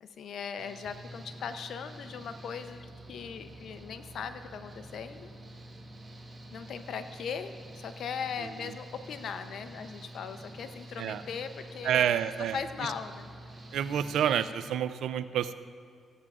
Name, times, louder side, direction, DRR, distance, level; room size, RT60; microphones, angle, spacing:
voice 1, 0.0-5.3 6.5-12.2 12.5-13.3, left 6 dB, 70° left, 9 dB, 0.6 m, -39 dB
Engine / Mechanical fan, 0.6-14.5, right 1 dB, 25° right, 1.2 m, -47 dB
voice 2, 11.8-12.9 13.7-15.5, right 9 dB, 80° right, 13 dB, 0.3 m, -29 dB
15.0 x 8.9 x 2.4 m, 2.2 s
cardioid pair, 80°, 0 cm